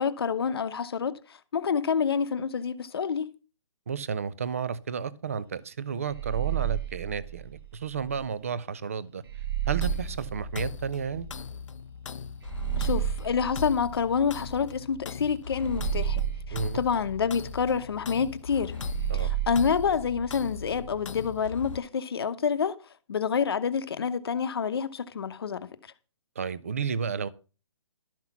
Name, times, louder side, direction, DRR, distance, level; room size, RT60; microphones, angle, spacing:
voice 1, 0.0-3.3 12.8-16.2 16.5-18.8 19.1-22.8 23.1-25.7, left 6 dB, 45° left, 0.9 m, -28 dB
voice 2, 3.9-9.2 9.7-11.3 16.5-16.8 19.1-19.4 26.4-27.3, right 6 dB, 25° right, 0.4 m, -32 dB
sound 1, 6.1-8.2 9.3-11.4 12.4-14.8 15.6-17.8 18.8-20.9, right 12 dB, 45° right, 1.3 m, -33 dB
sound 2, 9.8-21.8, left 5 dB, 70° left, 0.5 m, -38 dB
12.0 x 5.9 x 5.8 m
hypercardioid pair, 170°, 17 cm